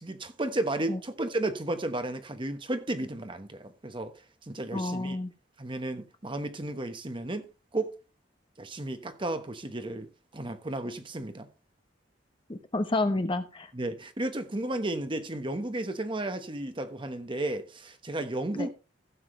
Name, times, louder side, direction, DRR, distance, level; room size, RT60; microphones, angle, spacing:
voice 1, 0.0-4.1 4.5-5.2 5.6-7.9 8.6-11.5 13.7-18.7, right 1 dB, 25° right, 1.1 m, -33 dB
voice 2, 4.7-5.3 12.5-13.7 18.5-18.7, left 2 dB, 30° left, 0.9 m, -29 dB
15.5 x 7.3 x 3.1 m
head